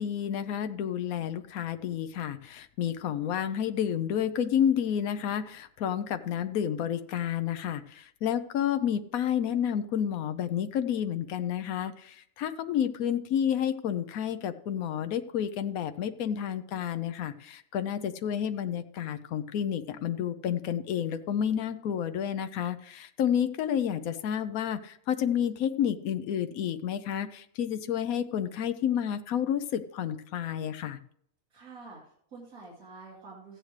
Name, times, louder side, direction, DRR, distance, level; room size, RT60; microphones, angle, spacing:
voice 1, 0.0-31.0, left 9 dB, 85° left, 10 dB, 1.1 m, -30 dB
voice 2, 31.5-33.6, right 3 dB, 85° right, -5 dB, 2.8 m, -48 dB
15.0 x 9.4 x 3.2 m, 0.66 s
omnidirectional pair, 1.4 m